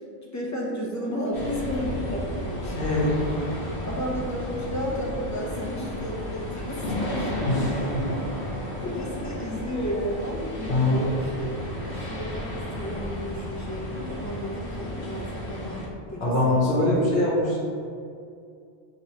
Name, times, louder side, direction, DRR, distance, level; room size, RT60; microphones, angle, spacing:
voice 1, 0.2-2.8 3.2-3.5 3.8-7.9 8.8-17.1 17.4-17.6, equal, 25° left, -3 dB, 0.4 m, -33 dB
sound 1, 1.3-15.9, left 1 dB, 60° left, 1.1 m, -33 dB
voice 2, 2.7-3.2 7.4-8.0 10.7-11.0 16.2-17.6, left 1 dB, 80° left, -6 dB, 1.1 m, -23 dB
3.0 x 2.9 x 4.2 m, 2.4 s
omnidirectional pair, 1.1 m